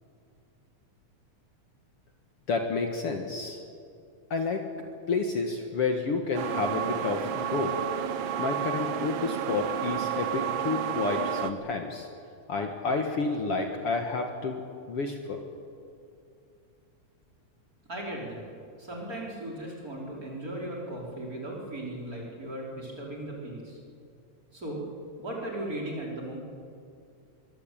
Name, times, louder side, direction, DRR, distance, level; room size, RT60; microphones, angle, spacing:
voice 1, 2.5-3.6 4.3-4.6 5.1-7.7 8.4-12.1 12.5-14.6 14.9-15.4, left 4 dB, 55° left, 3 dB, 2.4 m, -30 dB
sound 1, 6.3-11.5, right 10 dB, 70° right, 1.2 m, -31 dB
voice 2, 17.9-18.4 18.8-23.8 24.5-24.8 25.2-26.4, right 1 dB, 25° right, -3 dB, 5.5 m, -37 dB
23.5 x 23.0 x 8.8 m, 2.5 s
omnidirectional pair, 3.4 m